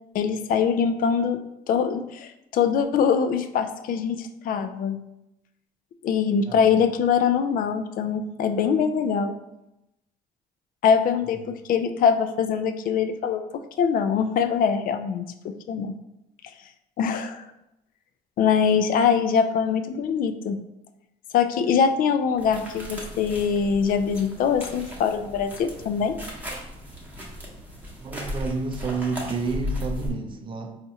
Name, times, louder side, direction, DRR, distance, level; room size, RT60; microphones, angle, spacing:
voice 1, 0.1-1.4 1.7-5.0 6.0-9.3 10.8-13.4 13.8-16.0 17.0-17.5 18.4-20.6 21.3-26.1, left 7 dB, 55° left, 9 dB, 0.4 m, -23 dB
voice 2, 6.5-6.9 28.0-30.7, right 4 dB, 30° right, 5 dB, 0.4 m, -30 dB
sound 1, 22.4-30.1, left 1 dB, 10° right, 0.9 m, -36 dB
4.2 x 2.4 x 2.7 m, 0.88 s
cardioid pair, 110°, 17 cm